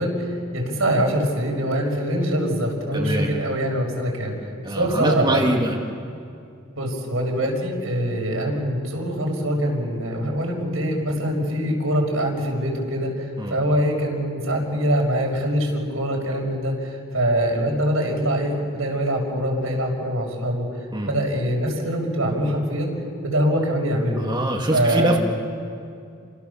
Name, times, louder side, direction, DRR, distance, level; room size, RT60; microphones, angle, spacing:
voice 1, 0.0-4.3 4.7-5.4 6.8-20.6 21.0-22.9 23.2-24.2 24.7-25.2, equal, 85° right, -1 dB, 6.2 m, -23 dB
voice 2, 2.9-3.3 4.6-5.8 13.4-13.6 20.9-21.1 24.2-25.2, right 1 dB, 20° right, -1 dB, 2.1 m, -24 dB
29.5 x 26.5 x 7.1 m, 2.4 s
head